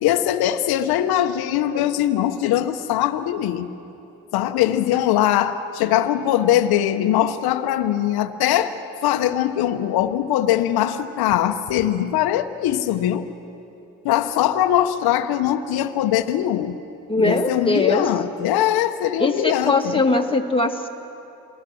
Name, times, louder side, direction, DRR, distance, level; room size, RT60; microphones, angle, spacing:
voice 1, 0.0-3.7 4.3-13.3 14.0-16.8 17.2-20.0, left 11 dB, 70° left, 7 dB, 1.1 m, -21 dB
voice 2, 17.1-18.0 19.2-20.9, left 2 dB, 15° left, 3 dB, 2.1 m, -21 dB
27.0 x 19.5 x 6.3 m, 2.9 s
supercardioid pair, 65°, 39 cm